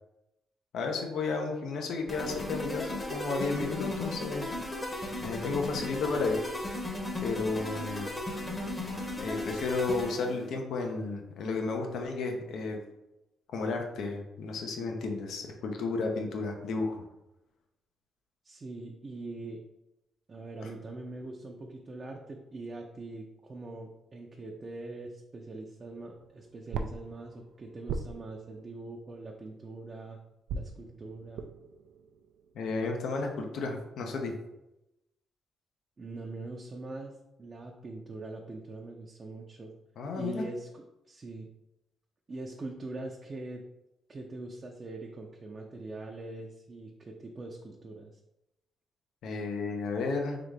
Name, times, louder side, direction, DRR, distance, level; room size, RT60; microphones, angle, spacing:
voice 1, 0.7-4.5 5.2-6.4 7.2-8.1 9.2-12.8 13.5-17.0 32.5-34.4 40.0-40.4 49.2-50.4, left 3 dB, 70° left, 3 dB, 0.8 m, -32 dB
sound 1, 2.1-10.4, left 1 dB, 25° left, 1.0 m, -36 dB
voice 2, 18.4-19.6 20.3-30.2 30.5-31.5 36.0-39.7 40.1-41.5 42.3-43.6 44.1-48.2, right 2 dB, 35° right, 0 dB, 0.5 m, -42 dB
sound 2, 25.8-29.9 30.5-33.5, right 4 dB, 85° right, 0.4 m, -42 dB
3.9 x 3.5 x 3.3 m, 0.92 s
cardioid pair, 90°, 0 cm